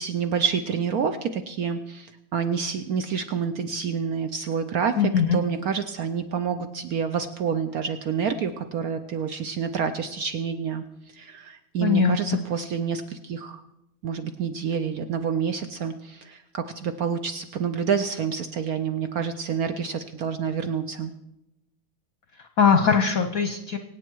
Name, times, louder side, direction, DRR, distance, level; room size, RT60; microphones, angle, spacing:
voice 1, 0.0-5.0 5.3-10.8 11.1-13.6 14.0-21.1, right 6 dB, 75° right, 9 dB, 0.8 m, -28 dB
voice 2, 5.0-5.4 11.8-12.4 22.4-23.8, left 6 dB, 55° left, 7 dB, 1.0 m, -21 dB
24.0 x 8.9 x 4.6 m, 0.90 s
omnidirectional pair, 2.4 m